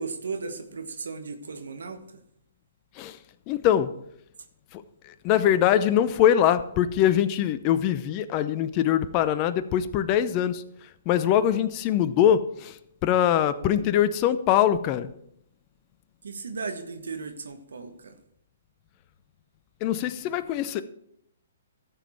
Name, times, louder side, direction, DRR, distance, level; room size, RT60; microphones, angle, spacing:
voice 1, 0.0-2.2 13.6-13.9 16.2-18.2, right 4 dB, 75° right, 8 dB, 1.3 m, -36 dB
voice 2, 3.5-3.9 4.7-4.8 5.2-10.6 11.1-12.8 13.0-15.1 19.8-20.8, left 10 dB, 35° left, 12 dB, 0.7 m, -22 dB
13.0 x 7.4 x 4.4 m, 0.72 s
hypercardioid pair, 130°, 0 cm